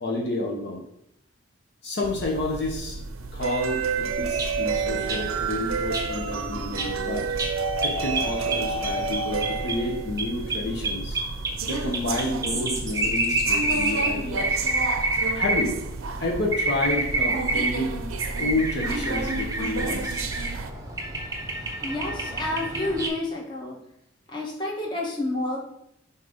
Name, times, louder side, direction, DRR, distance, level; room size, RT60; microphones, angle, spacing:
voice 1, 0.0-0.8 1.8-3.0 3.3-7.3 7.8-11.2 11.7-14.7 15.3-15.8 16.2-18.1 18.4-20.2, left 2 dB, 55° left, -1 dB, 1.0 m, -30 dB
sound 1, 2.0-20.7, right 4 dB, 90° right, 0.6 m, -30 dB
sound 2, 4.4-23.1, right 2 dB, 15° right, 0.8 m, -29 dB
voice 2, 21.8-23.8 24.3-25.6, left 2 dB, 20° left, -2 dB, 1.2 m, -29 dB
7.2 x 2.8 x 5.1 m, 0.77 s
head